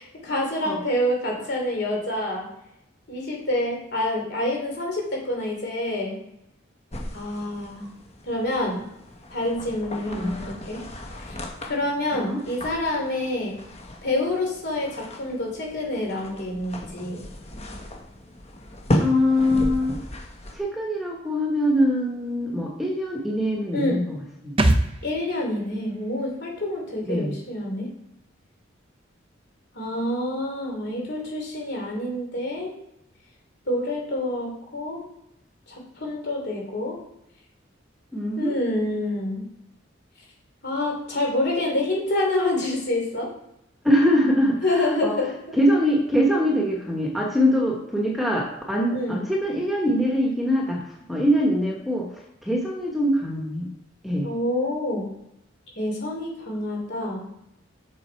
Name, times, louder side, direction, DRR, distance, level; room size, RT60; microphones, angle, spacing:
voice 1, 0.0-2.5 3.1-6.2 7.1-7.9 8.2-8.9 9.3-10.8 11.2-11.4 11.6-13.6 14.0-17.2 23.7-24.0 25.0-27.9 29.7-32.7 33.7-35.0 35.7-37.0 38.4-39.5 40.6-43.3 44.6-45.5 48.9-49.2 54.2-55.1 55.8-57.3, left 1 dB, 60° left, 0 dB, 3.0 m, -27 dB
sound 1, 6.9-20.6, left 1 dB, 35° left, 1.1 m, -34 dB
voice 2, 19.0-20.0 20.5-24.2 24.4-24.5 27.1-27.3 38.1-38.5 43.8-45.2 45.5-50.8 51.1-52.1 52.4-53.7 54.0-54.3, equal, ahead, -1 dB, 1.2 m, -23 dB
sound 2, 24.6-28.1 28.3-28.4, right 1 dB, 30° right, 0.6 m, -28 dB
7.6 x 6.0 x 4.5 m, 0.81 s
head